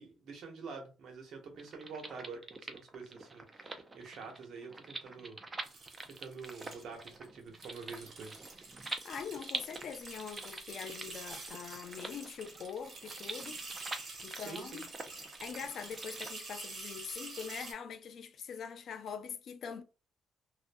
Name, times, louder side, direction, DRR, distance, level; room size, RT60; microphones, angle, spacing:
voice 1, 0.0-5.4 6.1-8.4 14.4-14.8, right 4 dB, 70° right, 0.9 m, -47 dB
sound 1, 1.5-16.3, right 3 dB, 25° right, 0.4 m, -46 dB
sound 2, 5.6-7.3 7.5-17.7, right 3 dB, 50° right, 1.2 m, -47 dB
voice 2, 8.9-13.6 14.2-14.9 15.2-19.8, left 7 dB, 60° left, 0.4 m, -43 dB
2.5 x 2.1 x 2.5 m
cardioid pair, 90°, 0 cm